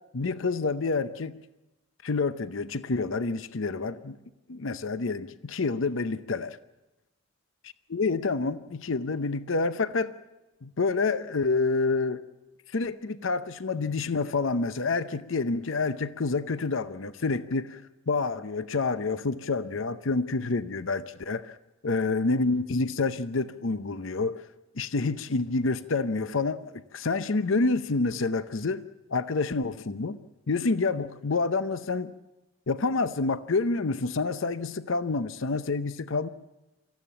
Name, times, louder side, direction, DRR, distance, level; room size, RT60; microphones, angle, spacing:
voice 1, 0.1-1.4 2.0-4.2 4.5-6.6 7.9-10.2 10.6-12.2 12.7-21.5 21.8-24.5 24.8-28.8 29.1-30.2 30.5-32.1 32.7-36.3, left 3 dB, 65° left, 0.7 m, -28 dB
25.0 x 15.0 x 8.8 m
head